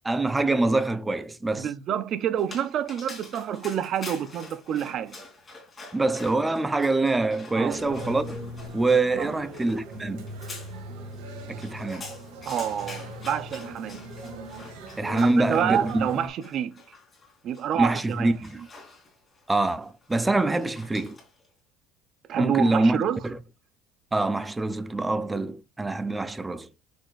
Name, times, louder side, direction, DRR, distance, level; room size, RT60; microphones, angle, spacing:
voice 1, 0.0-1.7 5.9-8.4 8.7-10.3 11.5-12.1 15.0-16.1 17.8-18.6 19.5-21.2 22.4-23.4 24.1-26.7, right 2 dB, 10° right, 0.6 m, -25 dB
voice 2, 1.5-5.2 7.6-7.8 9.2-9.3 12.5-14.0 15.1-16.8 17.4-18.3 22.3-23.2, right 9 dB, 45° right, 0.7 m, -28 dB
Dog, 2.4-21.5, left 3 dB, 20° left, 3.2 m, -47 dB
sound 1, 7.7-16.3, right 1 dB, 85° right, 2.1 m, -38 dB
6.4 x 6.3 x 2.5 m
cardioid pair, 130°, 0 cm